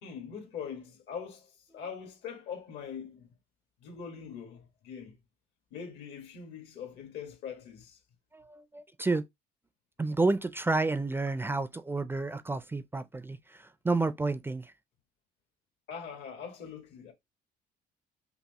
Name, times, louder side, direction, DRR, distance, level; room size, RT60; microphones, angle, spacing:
voice 1, 0.0-3.3 3.8-5.2 5.7-8.0 15.9-17.1, left 7 dB, 85° left, 1.7 m, -42 dB
voice 2, 8.3-9.3 10.0-14.7, right 3 dB, 15° right, 0.4 m, -30 dB
5.8 x 2.0 x 2.9 m
cardioid pair, 110°, 17 cm